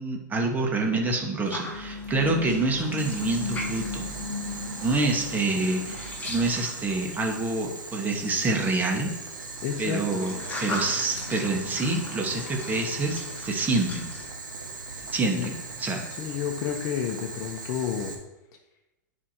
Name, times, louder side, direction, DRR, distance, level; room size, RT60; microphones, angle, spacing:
voice 1, 0.0-4.1 4.8-9.1 9.8-14.1 15.1-15.5 15.8-16.0, right 2 dB, 15° right, 1 dB, 1.5 m, -27 dB
sound 1, 1.4-7.7 8.8-14.3, left 2 dB, 15° left, 2.1 m, -37 dB
Boiling, 3.0-18.1, right 3 dB, 90° right, 1.3 m, -39 dB
voice 2, 9.6-10.3 15.3-15.5 16.1-18.1, left 8 dB, 40° left, 2 dB, 0.9 m, -31 dB
9.8 x 4.8 x 2.9 m, 0.96 s
hypercardioid pair, 115°, 10 cm